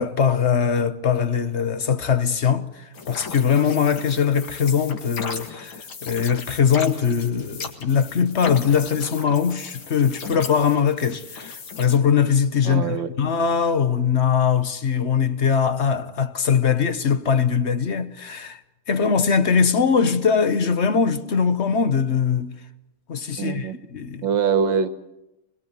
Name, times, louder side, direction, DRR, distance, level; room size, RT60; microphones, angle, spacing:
voice 1, 0.0-5.7 6.0-18.6 18.9-22.6 23.1-24.3, left 6 dB, 45° left, 1.0 m, -21 dB
sound 1, 2.9-12.0, left 5 dB, 65° left, 2.6 m, -36 dB
voice 2, 12.7-13.1 23.4-23.8 24.2-24.9, right 6 dB, 65° right, 1.9 m, -23 dB
25.5 x 21.0 x 7.9 m
omnidirectional pair, 2.4 m